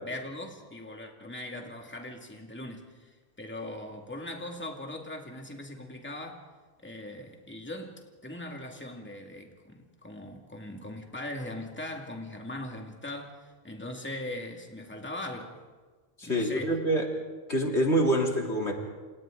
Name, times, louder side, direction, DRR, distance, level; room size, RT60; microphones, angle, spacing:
voice 1, 0.0-6.5 6.8-15.6 16.2-16.8, left 1 dB, 10° left, 2.3 m, -40 dB
voice 2, 16.2-17.0 17.5-18.7, right 1 dB, 80° left, 3.6 m, -26 dB
28.5 x 28.5 x 3.9 m
omnidirectional pair, 1.1 m